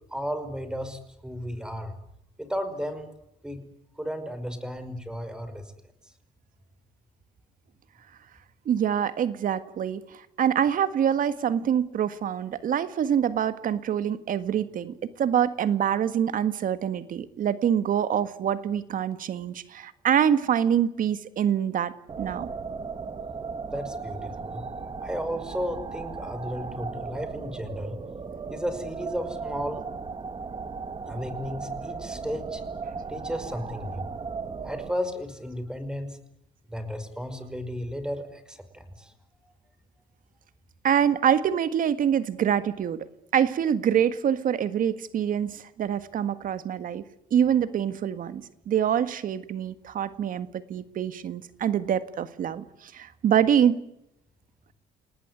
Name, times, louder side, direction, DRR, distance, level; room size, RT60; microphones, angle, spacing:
voice 1, 0.1-1.9 2.4-3.1 3.4-3.6 4.0-5.7 23.7-24.7 25.0-28.0 28.5-29.9 31.1-32.6 33.1-34.1 34.6-36.2 36.7-39.1 39.4-39.5, equal, 5° right, 10 dB, 5.4 m, -34 dB
voice 2, 8.6-22.5 40.8-43.1 43.3-47.0 47.3-53.8, right 9 dB, 55° right, 13 dB, 1.7 m, -25 dB
sound 1, 22.1-34.9, right 5 dB, 30° right, 2.6 m, -36 dB
29.0 x 19.0 x 9.6 m, 0.81 s
cardioid pair, 110°, 17 cm